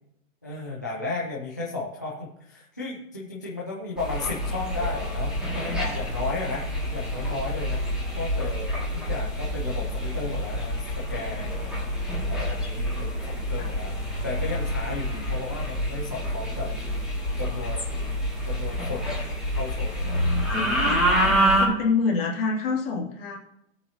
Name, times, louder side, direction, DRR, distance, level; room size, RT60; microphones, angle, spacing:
voice 1, 0.4-7.9 8.2-11.5 12.3-13.9 14.2-16.7 17.4-17.8 18.4-19.1 19.6-20.2 20.6-20.8, left 3 dB, 15° left, -6 dB, 0.3 m, -34 dB
sound 1, 4.0-21.6, equal, ahead, 2.0 m, -27 dB
voice 2, 20.0-23.4, left 4 dB, 45° left, -1 dB, 2.4 m, -28 dB
17.5 x 8.1 x 2.7 m, 0.81 s
hypercardioid pair, 170°, 41 cm